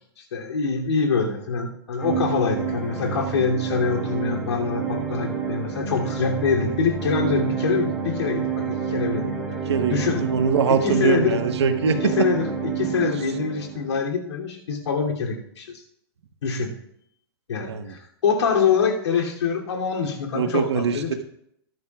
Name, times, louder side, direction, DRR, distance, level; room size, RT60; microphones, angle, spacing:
voice 1, 0.2-9.4 9.9-10.2 10.8-11.4 11.9-15.8 16.4-16.7 17.5-21.1, left 5 dB, 85° left, 0 dB, 3.0 m, -25 dB
sound 1, 2.0-14.0, right 6 dB, ahead, 3.8 m, -29 dB
voice 2, 9.7-12.0 13.0-13.1 17.7-17.9 20.3-21.1, right 6 dB, 75° right, 7 dB, 1.4 m, -23 dB
22.5 x 11.0 x 2.4 m, 0.73 s
hypercardioid pair, 170°, 14 cm